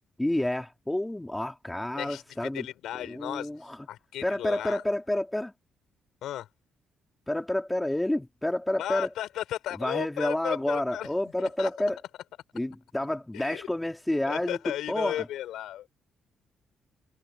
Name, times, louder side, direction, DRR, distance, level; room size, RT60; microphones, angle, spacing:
voice 1, 0.2-2.7 3.0-3.8 4.2-5.5 7.3-9.1 9.8-12.0 12.5-14.6 14.9-15.3, left 1 dB, 10° left, 3.2 m, -29 dB
voice 2, 2.0-3.5 3.9-4.8 6.2-6.5 8.8-11.1 11.4-11.7 13.3-13.7 14.3-16.0, left 12 dB, 80° left, 5.9 m, -35 dB
cardioid pair, 90°, 0 cm